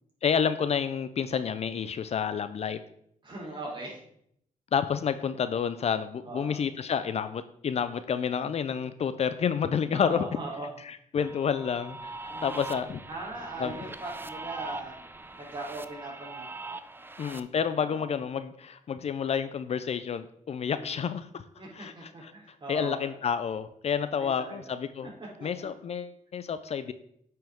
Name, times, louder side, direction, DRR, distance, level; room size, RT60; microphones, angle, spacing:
voice 1, 0.2-2.8 4.7-10.3 10.8-13.0 13.6-13.8 17.2-21.4 21.7-22.3 22.7-25.1 25.4-26.9, left 7 dB, 50° left, 12 dB, 0.5 m, -29 dB
voice 2, 3.2-4.0 6.2-6.6 9.9-10.7 12.3-12.7 13.1-14.9 15.4-16.5 17.7-18.1 20.7-20.9 21.6-23.2 24.2-24.6 25.0-25.1 25.4-25.7, right 2 dB, 35° right, -3 dB, 3.3 m, -40 dB
sound 1, 11.2-17.4, right 3 dB, 15° right, 0.5 m, -41 dB
8.9 x 5.7 x 3.6 m, 0.70 s
cardioid pair, 90°, 14 cm